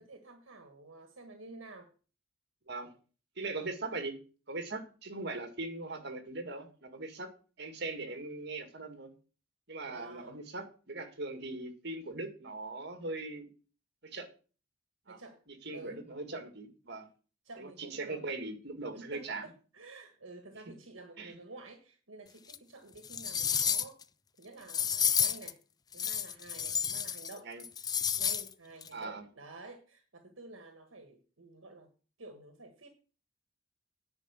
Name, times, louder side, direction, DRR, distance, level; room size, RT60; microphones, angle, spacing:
voice 1, 0.0-1.9 9.8-10.4 15.1-15.4 15.7-16.0 17.4-18.2 18.9-24.0 24.4-25.6 25.9-27.5 27.8-27.9 28.2-31.9 32.2-32.9, right 2 dB, 85° right, 6 dB, 1.4 m, -50 dB
voice 2, 3.4-4.2 4.5-7.3 7.6-9.1 9.7-13.5 14.0-14.3 15.1-15.2 15.6-17.1 17.6-19.4 21.2-21.3 27.4-27.6 28.9-29.2, right 2 dB, 55° right, 7 dB, 2.0 m, -40 dB
sound 1, 22.5-22.6 23.0-24.0 24.7-25.5 25.9-27.3 27.6-28.5 28.8-28.9, left 8 dB, 20° left, 0.4 m, -31 dB
10.0 x 5.2 x 8.3 m, 0.37 s
head